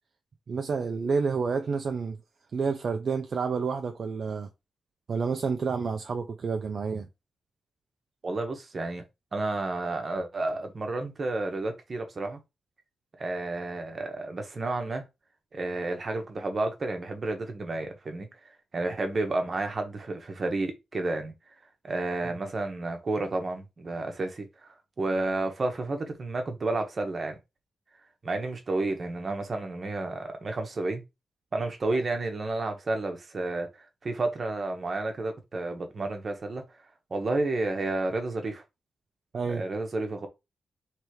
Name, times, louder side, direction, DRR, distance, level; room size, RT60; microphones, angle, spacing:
voice 1, 0.5-2.2 2.5-4.5 5.1-7.1 39.3-39.6, right 5 dB, 55° right, 0.5 m, -29 dB
voice 2, 8.2-9.0 9.3-12.4 13.2-15.0 15.5-18.3 18.7-21.3 21.8-24.7 25.0-27.4 28.2-31.0 31.5-36.6 37.1-38.6 39.4-40.3, right 2 dB, 40° right, 1.1 m, -31 dB
3.3 x 3.1 x 4.7 m
wide cardioid pair, 140°, 0 cm